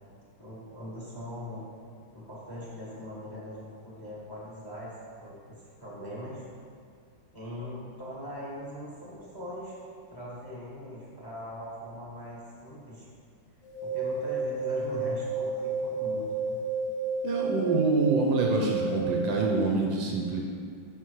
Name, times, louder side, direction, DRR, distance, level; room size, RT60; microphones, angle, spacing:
voice 1, 0.4-1.6 2.1-4.9 5.2-6.4 7.3-9.7 10.1-13.0 13.8-16.6, equal, 15° left, -6 dB, 1.1 m, -41 dB
sound 1, 13.6-19.6, right 3 dB, 80° left, 1.9 m, -31 dB
voice 2, 17.2-20.4, right 3 dB, 70° right, 0 dB, 1.3 m, -26 dB
10.5 x 4.3 x 3.1 m, 2.2 s
omnidirectional pair, 2.3 m